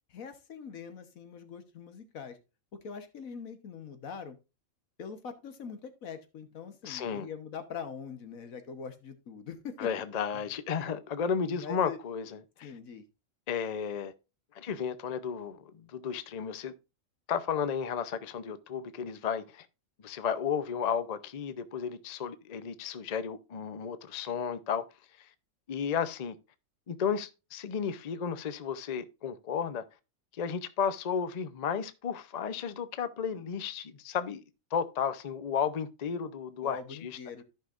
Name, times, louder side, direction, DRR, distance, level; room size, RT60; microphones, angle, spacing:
voice 1, 0.1-2.4 2.7-4.4 5.0-9.9 10.3-10.4 11.4-12.0 12.6-13.0 36.6-37.4, left 6 dB, 80° left, 1.5 m, -43 dB
voice 2, 6.8-7.3 9.8-12.7 13.5-14.1 14.5-16.7 17.3-19.7 20.0-24.8 25.2-25.3 25.7-26.4 26.9-29.8 30.3-34.4 34.7-37.2, left 7 dB, 45° left, 0.5 m, -33 dB
14.5 x 5.6 x 2.5 m
omnidirectional pair, 1.4 m